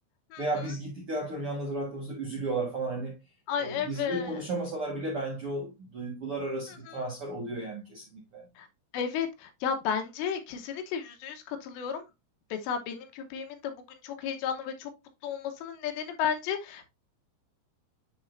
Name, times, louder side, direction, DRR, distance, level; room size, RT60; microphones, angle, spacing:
voice 1, 0.4-3.1 3.6-8.4, right 2 dB, 65° right, 1.4 m, -34 dB
voice 2, 3.5-4.4 6.7-7.0 8.6-8.7 8.9-12.1 12.5-14.9 15.2-16.9, left 7 dB, 85° left, 3.3 m, -33 dB
9.8 x 4.2 x 2.5 m
omnidirectional pair, 5.0 m